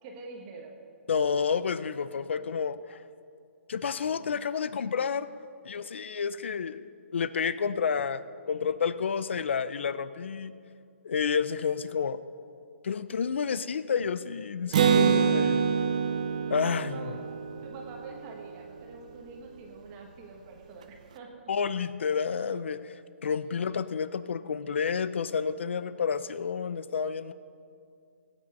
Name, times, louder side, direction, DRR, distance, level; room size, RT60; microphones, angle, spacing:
voice 1, 0.0-0.8 16.8-17.3 17.6-21.5, right 4 dB, 15° right, 2 dB, 1.1 m, -46 dB
voice 2, 1.1-3.0 3.7-5.3 5.6-6.9 7.1-10.5 11.0-12.2 12.8-15.6 16.5-17.1 21.5-22.9 23.2-27.3, left 6 dB, 60° left, 14 dB, 0.5 m, -30 dB
Acoustic guitar, 14.7-18.4, right 6 dB, 35° right, 0.5 m, -25 dB
17.0 x 8.9 x 5.4 m, 2.5 s
hypercardioid pair, 180°, 7 cm